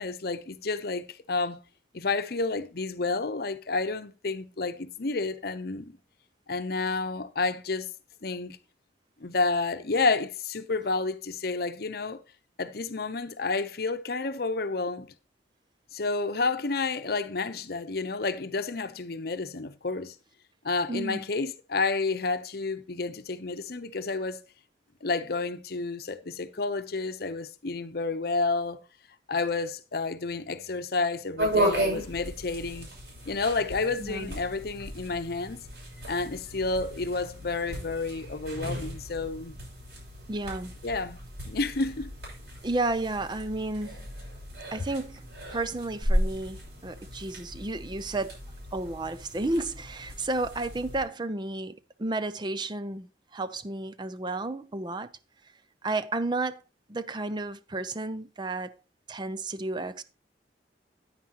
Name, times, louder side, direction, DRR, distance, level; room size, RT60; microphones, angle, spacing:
voice 1, 0.0-1.6 1.9-6.0 6.5-7.9 8.2-8.6 9.2-12.2 12.6-15.1 15.9-20.1 20.6-24.4 25.0-28.8 29.3-32.9 33.3-35.6 36.1-39.5 40.8-41.2 41.4-42.1, left 3 dB, 55° left, 0.8 m, -30 dB
voice 2, 20.9-21.2 34.0-34.3 40.3-40.7 42.6-44.0 44.7-45.2 45.5-48.4 48.7-55.1 55.8-56.6 56.9-58.7 59.1-60.0, right 2 dB, 25° right, 0.5 m, -32 dB
sound 1, 31.4-51.0, equal, 70° right, 6.6 m, -35 dB
9.6 x 9.5 x 2.9 m
head